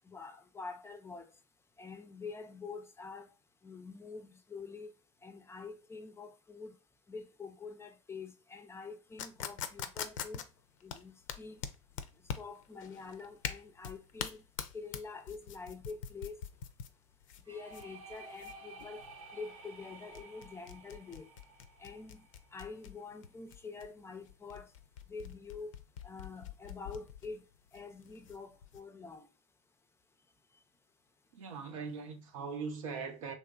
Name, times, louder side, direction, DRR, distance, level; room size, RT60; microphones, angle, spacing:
voice 1, 0.1-1.3 1.8-3.3 3.6-4.9 5.2-6.8 7.1-10.5 10.8-11.6 12.4-14.4 14.7-16.4 17.5-19.0 19.3-21.3 21.8-22.2 22.5-24.7 25.1-25.7 26.0-27.5 27.7-29.3, left 4 dB, 15° left, 0.4 m, -46 dB
sound 1, 9.2-28.8, left 8 dB, 75° left, 0.4 m, -44 dB
sound 2, 17.5-23.1, right 3 dB, 90° right, 1.1 m, -53 dB
voice 2, 31.3-33.3, right 5 dB, 75° right, 0.7 m, -40 dB
3.0 x 2.8 x 2.3 m
hypercardioid pair, 85°, 17 cm